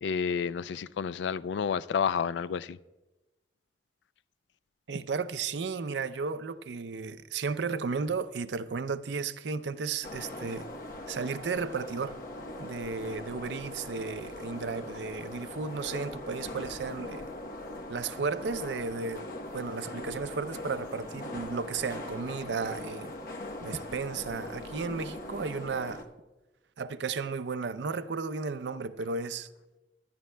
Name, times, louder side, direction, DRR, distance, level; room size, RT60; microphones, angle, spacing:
voice 1, 0.0-2.8, left 7 dB, 85° left, 0.3 m, -30 dB
voice 2, 4.9-10.7 11.1-12.2 12.6-17.3 17.9-19.2 19.5-23.1 23.6-26.1 26.8-29.5, right 4 dB, 80° right, 0.5 m, -34 dB
sound 1, 10.0-26.0, left 1 dB, 50° left, 0.9 m, -41 dB
24.0 x 10.5 x 2.2 m
head